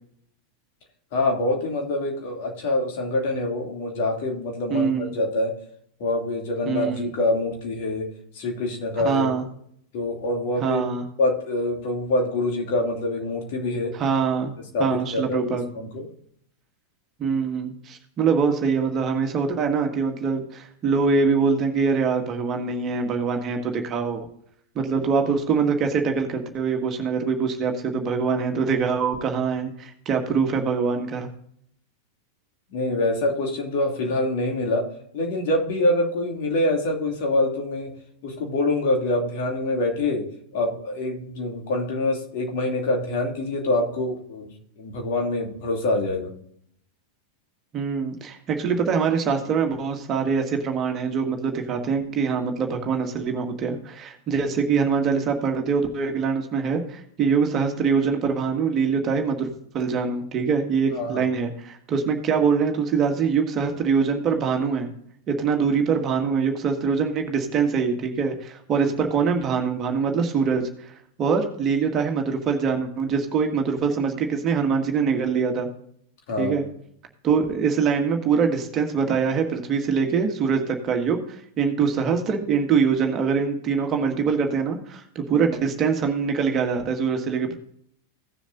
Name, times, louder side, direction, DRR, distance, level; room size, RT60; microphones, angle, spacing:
voice 1, 1.1-5.5 6.0-8.1 8.3-9.3 9.9-10.8 11.2-13.9 14.7-16.0 32.7-34.9 35.1-37.9 38.2-40.3 40.5-46.3 60.9-61.2 76.3-76.6, left 2 dB, 50° left, 1 dB, 2.8 m, -25 dB
voice 2, 4.7-5.1 6.6-7.1 9.0-9.4 10.6-11.0 13.9-14.5 14.8-15.6 17.2-24.3 24.7-31.3 47.7-59.5 59.7-64.9 65.3-70.7 71.2-75.7 76.4-76.6 77.2-87.5, right 5 dB, 30° right, 4 dB, 1.7 m, -24 dB
16.5 x 7.1 x 2.7 m, 0.67 s
figure-of-eight pair, 90°, 0 cm